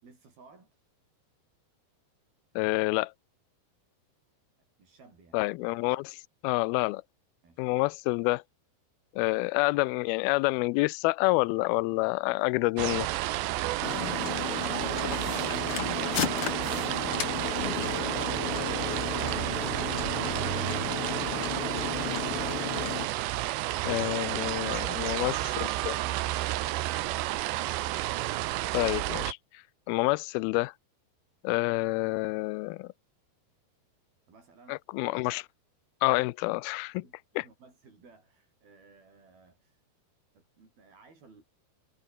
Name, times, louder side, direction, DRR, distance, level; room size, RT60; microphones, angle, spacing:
voice 1, 0.0-0.8 4.8-5.4 7.4-7.7 34.3-34.8 37.0-39.8 40.3-41.4, right 4 dB, 60° right, 9.5 m, -57 dB
voice 2, 2.6-3.1 5.3-6.2 6.4-7.0 7.6-8.4 9.2-13.1 23.9-26.0 28.7-29.4 29.9-30.7 31.4-32.9 34.7-35.5 36.0-37.0 37.4-37.5, left 23 dB, 80° left, 2.2 m, -28 dB
sound 1, 12.8-29.3, right 16 dB, 85° right, 3.3 m, -31 dB
sound 2, 13.8-23.1, left 8 dB, 55° left, 1.7 m, -34 dB
omnidirectional pair, 4.9 m